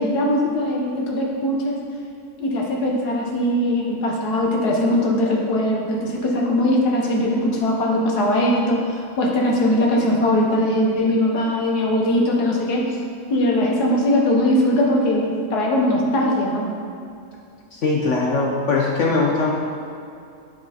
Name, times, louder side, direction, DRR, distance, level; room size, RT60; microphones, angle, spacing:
voice 1, 0.0-1.8 2.4-12.8 13.3-16.7, left 1 dB, 90° left, -1 dB, 1.8 m, -20 dB
voice 2, 17.7-19.5, left 3 dB, 55° left, -3 dB, 1.1 m, -20 dB
8.8 x 6.3 x 4.2 m, 2.5 s
omnidirectional pair, 1.6 m